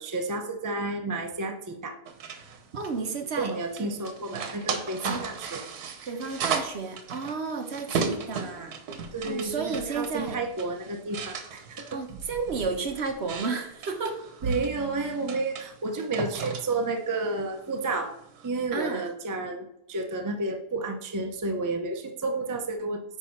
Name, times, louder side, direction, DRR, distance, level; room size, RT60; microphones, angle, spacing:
voice 1, 0.0-2.0 3.4-5.6 9.1-12.0 14.4-18.1 18.4-23.0, right 3 dB, 30° right, 4 dB, 0.3 m, -31 dB
sound 1, 2.1-18.5, right 5 dB, 80° right, 1.4 m, -36 dB
voice 2, 2.7-3.5 3.8-3.9 5.0-5.2 6.1-8.8 9.2-10.4 11.9-14.2 18.7-19.0, right 4 dB, 50° right, 5 dB, 1.0 m, -32 dB
9.1 x 3.6 x 5.7 m, 0.78 s
omnidirectional pair, 1.6 m